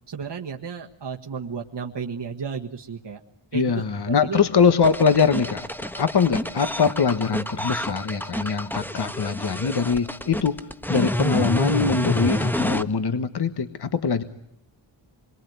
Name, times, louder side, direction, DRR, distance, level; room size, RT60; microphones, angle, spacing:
voice 1, 0.1-3.2 3.5-4.4, right 6 dB, 55° right, 2 dB, 1.6 m, -33 dB
voice 2, 3.5-10.6 10.9-14.2, left 6 dB, 50° left, 10 dB, 1.5 m, -22 dB
sound 1, 4.8-12.8, left 1 dB, 5° left, 1.2 m, -28 dB
27.5 x 23.0 x 9.4 m, 0.81 s
wide cardioid pair, 90°, 50 cm